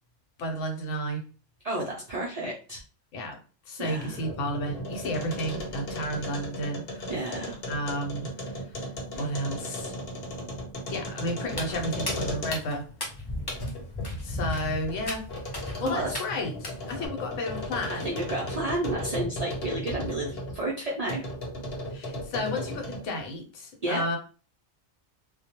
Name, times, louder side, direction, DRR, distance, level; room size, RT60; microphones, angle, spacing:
voice 1, 0.4-1.2 3.1-3.4 3.7-7.0 7.6-8.7 9.2-10.0 10.9-12.9 14.2-15.3 15.8-18.1 21.9-24.2, equal, 90° left, 2 dB, 1.0 m, -32 dB
voice 2, 1.6-2.8 3.8-4.2 7.1-7.6 15.8-16.1 17.9-21.3 23.8-24.0, right 1 dB, 75° right, -3 dB, 0.3 m, -31 dB
sound 1, 3.9-12.8 13.3-20.6 21.1-23.2, equal, 55° left, 0.9 m, -36 dB
Walk footsteps, 11.5-17.1, left 1 dB, 40° left, 0.3 m, -37 dB
2.2 x 2.0 x 2.8 m, 0.36 s
omnidirectional pair, 1.3 m